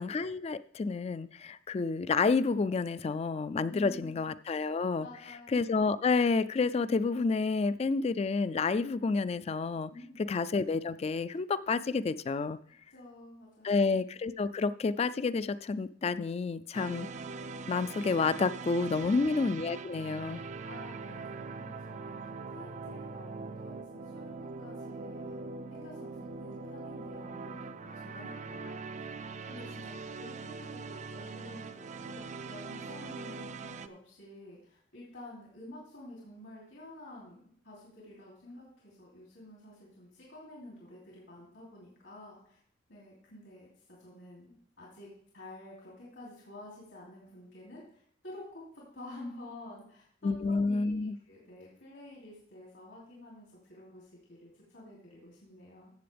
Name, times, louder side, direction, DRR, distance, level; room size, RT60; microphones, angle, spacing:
voice 1, 0.0-5.1 5.5-9.9 10.3-12.6 13.6-17.1 17.7-20.4 50.2-51.2, left 4 dB, 35° left, 16 dB, 0.3 m, -29 dB
voice 2, 3.7-4.2 5.0-5.7 9.9-10.3 12.9-14.0 18.9-19.3 20.3-25.4 25.7-29.0 29.5-42.6 42.9-43.7 44.0-55.9, left 1 dB, 75° left, -5 dB, 3.1 m, -50 dB
sound 1, 16.7-33.9, right 4 dB, 40° right, 0.4 m, -42 dB
14.5 x 7.6 x 3.4 m, 0.63 s
head